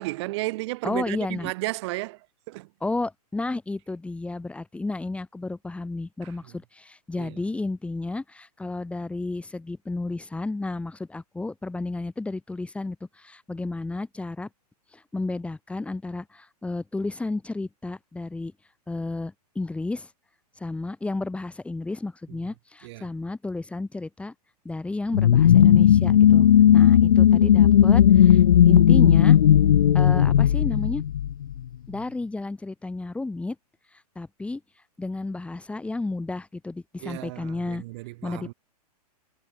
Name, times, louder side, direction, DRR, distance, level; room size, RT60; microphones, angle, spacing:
voice 1, 0.0-2.7 6.2-6.3 7.2-7.4 22.3-22.4 22.8-23.1 26.3-26.9 37.0-38.5, right 21 dB, 40° right, 5.1 m, -34 dB
voice 2, 0.8-1.5 2.8-14.5 14.9-18.5 18.9-20.1 20.6-24.3 24.6-26.5 26.7-29.4 29.9-31.0 31.9-33.6 33.9-34.6 35.0-37.8 38.2-38.5, left 2 dB, 5° left, 4.0 m, -32 dB
sound 1, 25.1-31.6, left 10 dB, 60° left, 1.8 m, -16 dB
figure-of-eight pair, 110°, 21 cm